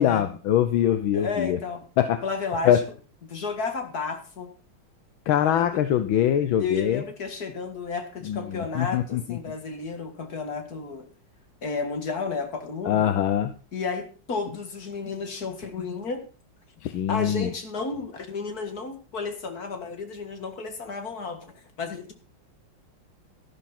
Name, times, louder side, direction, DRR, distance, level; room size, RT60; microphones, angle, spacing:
voice 1, 0.0-1.6 2.0-2.2 2.6-2.8 5.3-7.0 8.2-9.4 12.8-13.5 16.8-17.5, left 10 dB, 80° left, 10 dB, 1.6 m, -23 dB
voice 2, 1.1-1.8 2.2-2.8 3.3-4.5 5.4-5.8 6.6-11.1 11.6-13.0 13.7-16.2 17.1-22.1, left 4 dB, 50° left, 6 dB, 2.3 m, -32 dB
12.5 x 12.0 x 4.3 m, 0.36 s
omnidirectional pair, 2.2 m